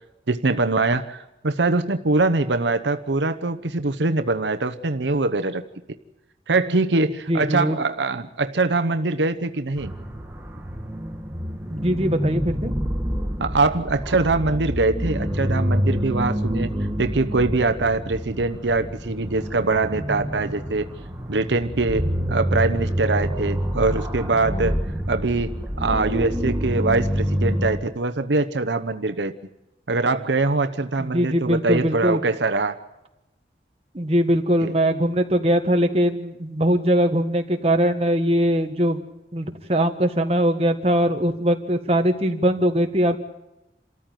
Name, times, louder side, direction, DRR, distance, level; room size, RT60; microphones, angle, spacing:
voice 1, 0.3-5.6 6.5-9.9 13.4-16.7 17.0-20.9 21.3-24.8 25.1-29.3 29.9-32.8 34.6-34.7, right 3 dB, 85° right, 9 dB, 0.9 m, -23 dB
voice 2, 7.3-7.8 11.6-12.7 31.0-32.2 33.9-39.0 39.3-43.2, equal, 35° right, 5 dB, 1.6 m, -21 dB
sound 1, 9.8-27.8, equal, 10° right, 1.7 m, -27 dB
27.5 x 14.0 x 9.1 m, 0.95 s
head